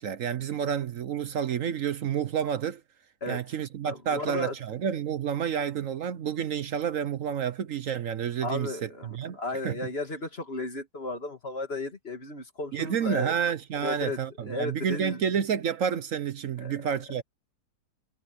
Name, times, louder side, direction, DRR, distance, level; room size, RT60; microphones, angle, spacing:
voice 1, 0.0-2.8 3.3-9.4 9.6-9.8 12.7-17.2, right 8 dB, 60° right, 1.0 m, -29 dB
voice 2, 3.8-4.5 8.4-13.4 13.8-15.2 16.6-16.9, left 2 dB, 35° left, 2.7 m, -34 dB
omnidirectional pair, 1.9 m